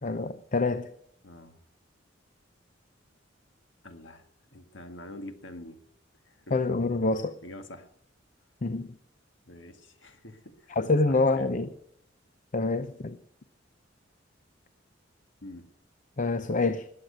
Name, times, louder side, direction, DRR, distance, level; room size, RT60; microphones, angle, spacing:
voice 1, 0.0-0.9 6.5-7.4 8.6-9.0 10.8-11.7 12.5-13.2 16.2-16.9, left 3 dB, 40° left, 0.6 m, -26 dB
voice 2, 1.2-1.6 3.8-5.8 6.3-6.6 7.4-7.9 9.5-10.8 11.1-11.5 15.4-15.7, left 1 dB, 70° left, 1.8 m, -46 dB
20.5 x 7.7 x 7.9 m
head